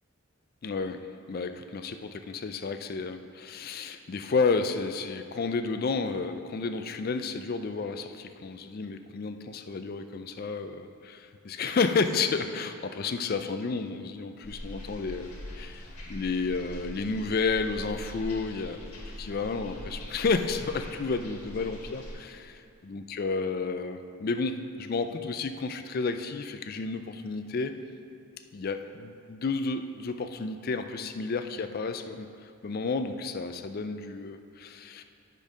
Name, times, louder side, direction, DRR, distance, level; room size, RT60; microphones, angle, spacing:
voice 1, 0.6-1.0 1.3-15.8 16.1-27.7 28.5-35.0, left 4 dB, 40° left, 8 dB, 0.4 m, -31 dB
sound 1, 14.4-22.2, left 1 dB, 85° left, 1.5 m, -42 dB
8.6 x 5.3 x 5.1 m, 2.5 s
head